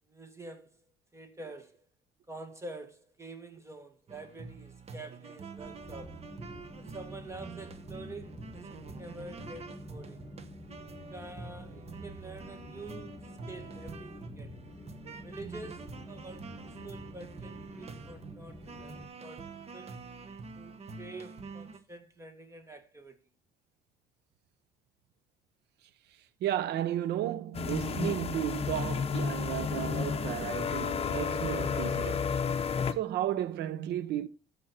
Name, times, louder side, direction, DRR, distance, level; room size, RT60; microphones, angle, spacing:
voice 1, 0.1-0.8 1.1-1.9 2.3-6.2 6.8-10.2 10.9-13.2 13.5-14.5 15.2-20.0 20.6-23.2, right 2 dB, 15° right, 1.9 m, -47 dB
sound 1, 4.1-21.8, right 4 dB, 35° right, 1.1 m, -46 dB
sound 2, 5.6-19.0, left 1 dB, 10° left, 2.3 m, -48 dB
voice 2, 26.4-32.3 32.9-34.3, right 12 dB, 70° right, 0.8 m, -33 dB
sound 3, 27.5-32.9, left 6 dB, 35° left, 0.9 m, -31 dB
14.5 x 5.4 x 4.4 m
cardioid pair, 110°, 18 cm